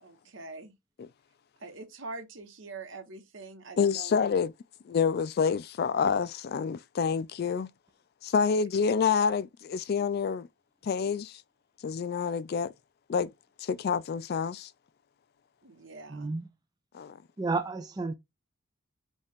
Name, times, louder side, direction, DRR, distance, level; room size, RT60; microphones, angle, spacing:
voice 1, 0.0-0.7 1.6-4.1 8.4-8.6 15.6-16.3, right 3 dB, 65° right, 1.1 m, -44 dB
voice 2, 3.8-4.5 4.9-7.7 8.2-10.5 10.8-11.4 11.8-12.7 13.1-13.3 13.6-14.7 16.9-17.2, left 6 dB, 50° left, 0.3 m, -28 dB
voice 3, 16.1-16.4 17.4-18.1, right 3 dB, 20° right, 0.4 m, -31 dB
5.3 x 2.5 x 3.5 m
head